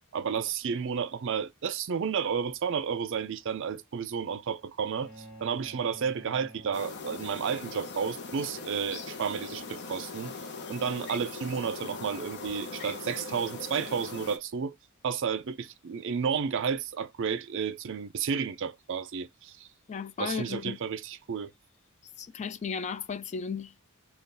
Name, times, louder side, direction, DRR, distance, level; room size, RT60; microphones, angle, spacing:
voice 1, 0.1-10.3 10.7-14.7 15.0-19.7 20.2-21.5, right 6 dB, 55° right, 0.4 m, -32 dB
sound 1, 5.0-7.5, right 1 dB, ahead, 1.5 m, -50 dB
sound 2, 6.7-14.4, left 4 dB, 50° left, 0.8 m, -40 dB
voice 2, 19.9-20.8 22.2-23.8, left 6 dB, 30° left, 0.3 m, -35 dB
3.7 x 2.4 x 3.8 m
head